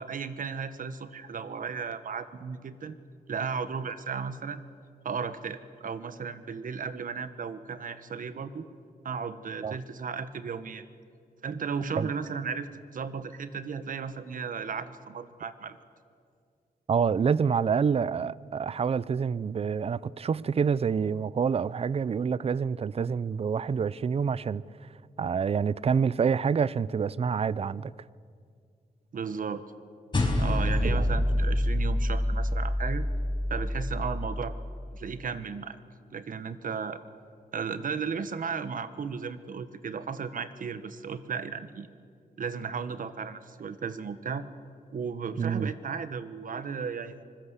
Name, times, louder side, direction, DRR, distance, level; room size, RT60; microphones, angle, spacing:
voice 1, 0.0-3.0 3.3-4.6 5.0-8.7 9.0-10.8 11.4-15.8 29.1-29.6 30.4-33.0 33.5-34.5 34.9-35.8 36.1-37.0 37.5-41.9 42.4-44.5 44.9-47.2, right 6 dB, 60° right, 1.4 m, -35 dB
voice 2, 16.9-24.6 25.2-27.9 30.8-31.2 45.4-45.7, right 6 dB, 40° right, 0.5 m, -27 dB
sound 1, 30.1-34.8, left 1 dB, 30° left, 4.8 m, -27 dB
25.0 x 20.5 x 8.3 m
wide cardioid pair, 105°, 16 cm